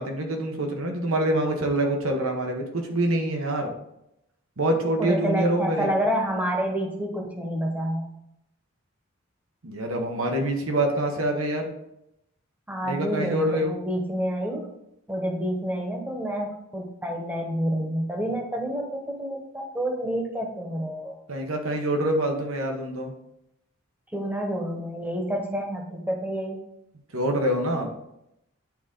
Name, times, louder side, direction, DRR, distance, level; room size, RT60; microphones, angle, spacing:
voice 1, 0.0-3.7 4.6-5.9 9.6-11.7 12.8-13.7 21.3-23.1 27.1-27.9, right 1 dB, 85° right, 3 dB, 1.1 m, -25 dB
voice 2, 5.0-8.1 12.7-14.7 15.1-21.2 24.1-26.6, equal, 10° right, 1 dB, 1.0 m, -28 dB
8.9 x 3.7 x 3.8 m, 0.82 s
head